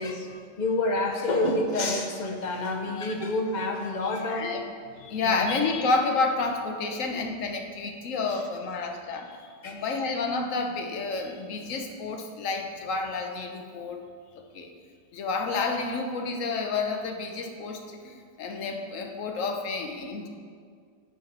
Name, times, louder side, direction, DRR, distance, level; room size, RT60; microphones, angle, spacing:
voice 1, 0.0-4.5 5.2-5.5 9.6-9.8, left 2 dB, 45° left, 3 dB, 0.7 m, -28 dB
voice 2, 4.3-4.6 5.0-14.0 14.5-14.7 15.1-20.3, left 3 dB, 70° left, 4 dB, 1.1 m, -30 dB
7.7 x 4.9 x 5.4 m, 2.1 s
omnidirectional pair, 1.4 m